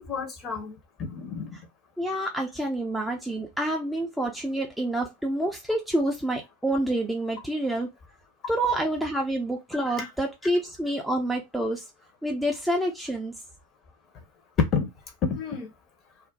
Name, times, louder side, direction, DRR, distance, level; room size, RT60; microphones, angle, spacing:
voice 1, 0.0-1.6 9.9-10.1 14.6-14.9 15.2-15.7, left 5 dB, 30° left, 0.9 m, -29 dB
voice 2, 2.0-7.9 8.5-11.8 12.2-13.3, right 1 dB, ahead, 0.5 m, -28 dB
2.5 x 2.1 x 3.9 m
figure-of-eight pair, 90°, 0 cm